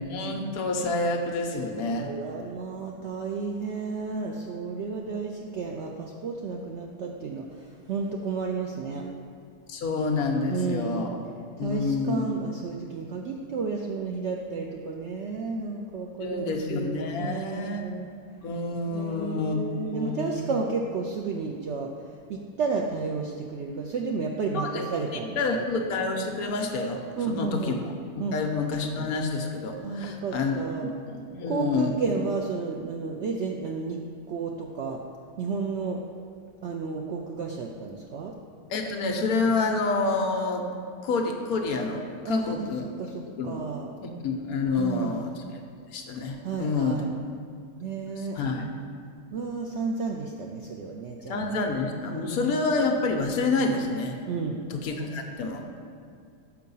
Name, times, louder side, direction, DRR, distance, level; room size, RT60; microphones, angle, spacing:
voice 1, 0.0-2.1 9.7-11.2 11.6-12.3 16.2-17.8 18.4-19.6 19.9-20.5 24.5-24.9 25.1-27.0 27.3-27.8 28.2-32.0 38.7-40.6 41.0-43.6 44.0-45.4 45.9-47.0 48.2-48.7 51.3-54.2 54.7-55.7, left 3 dB, 70° left, 3 dB, 1.1 m, -28 dB
voice 2, 1.9-9.1 10.5-11.1 11.6-18.1 18.9-21.9 22.3-25.4 27.2-27.8 28.2-28.4 29.8-30.9 31.5-34.0 34.3-35.0 35.4-36.0 36.6-38.3 42.2-42.7 43.0-43.9 44.8-45.3 46.4-47.1 47.8-48.6 49.3-51.6 52.1-52.6 54.3-54.6 55.0-55.1, right 4 dB, 85° right, 0 dB, 0.6 m, -32 dB
6.8 x 4.7 x 5.4 m, 2.3 s
omnidirectional pair, 1.7 m